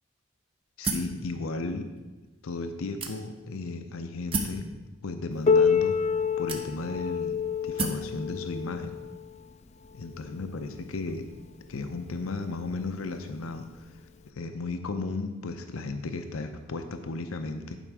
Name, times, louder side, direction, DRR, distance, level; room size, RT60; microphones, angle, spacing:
voice 1, 0.8-1.9 2.4-4.7 5.0-6.0 6.4-9.0 9.9-11.3 11.7-13.9 14.3-17.8, left 3 dB, 85° left, 7 dB, 0.6 m, -35 dB
sound 1, 0.8-1.2 2.0-2.1 3.0-3.5 4.3-4.6 5.6-5.7 6.5-7.0 7.8-8.1, right 3 dB, 25° right, 0.7 m, -31 dB
Piano, 5.5-10.8 11.6-11.7 12.2-12.3 13.1-13.2 14.2-14.3, left 6 dB, 30° left, 0.3 m, -27 dB
11.0 x 5.1 x 4.6 m, 1.2 s
head